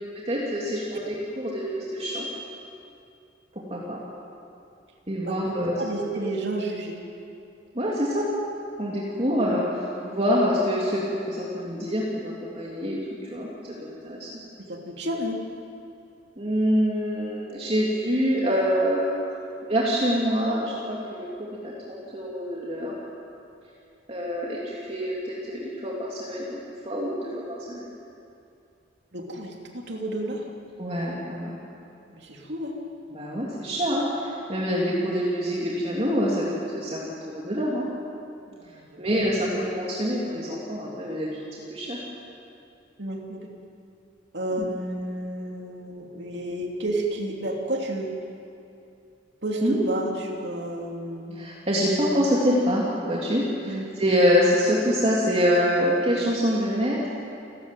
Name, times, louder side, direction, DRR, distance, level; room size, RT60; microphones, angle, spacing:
voice 1, 0.3-2.3 3.5-4.0 5.1-5.7 7.7-8.3 8.8-13.0 13.3-13.5 13.8-14.3 16.4-19.1 19.6-22.9 24.1-27.9 30.8-31.6 33.1-37.9 39.0-41.4 41.7-42.0 44.6-44.7 49.6-49.8 51.3-57.0, equal, 30° right, -5 dB, 3.0 m, -26 dB
voice 2, 5.2-7.0 14.6-15.4 29.1-30.5 32.1-32.7 38.7-39.0 43.0-43.5 44.3-48.1 49.4-51.4 53.6-53.8 54.3-54.5, right 1 dB, 60° right, 0 dB, 3.1 m, -31 dB
29.5 x 15.0 x 9.2 m, 2.7 s
head